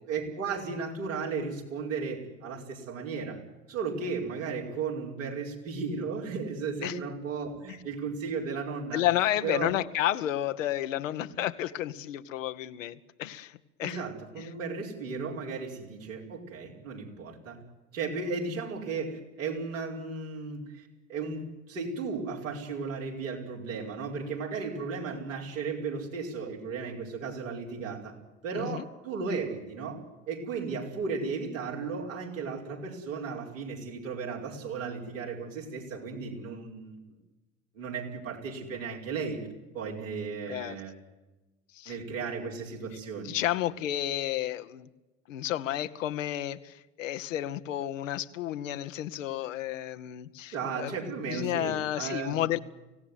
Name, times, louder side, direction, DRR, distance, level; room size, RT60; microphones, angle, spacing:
voice 1, 0.0-3.4 3.7-9.0 9.4-9.7 13.8-17.6 17.9-28.1 28.4-37.0 37.7-39.5 39.7-40.9 41.9-43.3 50.5-52.5, right 5 dB, 85° right, -1 dB, 5.4 m, -35 dB
voice 2, 8.9-14.0 14.4-14.5 28.5-28.9 40.5-40.8 41.7-42.0 43.2-44.9 45.3-52.6, left 13 dB, 80° left, 10 dB, 1.3 m, -31 dB
25.0 x 17.5 x 9.5 m, 1.1 s
hypercardioid pair, 70°, 38 cm